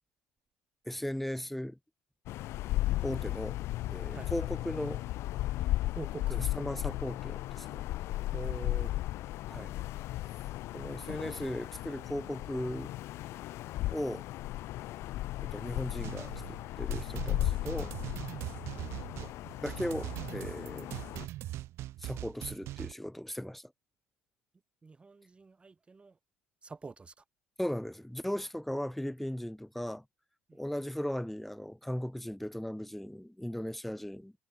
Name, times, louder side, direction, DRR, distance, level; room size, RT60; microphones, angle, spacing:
voice 1, 0.9-1.8 3.0-3.6 3.9-5.0 6.3-7.9 9.5-9.8 10.7-12.9 13.9-14.3 15.4-17.9 19.6-20.9 22.0-23.7 27.6-30.0 30.5-34.3, equal, 5° left, 1.9 m, -37 dB
sound 1, 2.3-21.3, left 16 dB, 65° left, 1.6 m, -36 dB
voice 2, 5.9-6.4 8.3-8.9 24.8-26.1 26.6-27.1, right 4 dB, 20° right, 0.8 m, -44 dB
sound 2, 16.0-22.9, right 15 dB, 60° right, 3.1 m, -41 dB
hypercardioid pair, 75°, 5 cm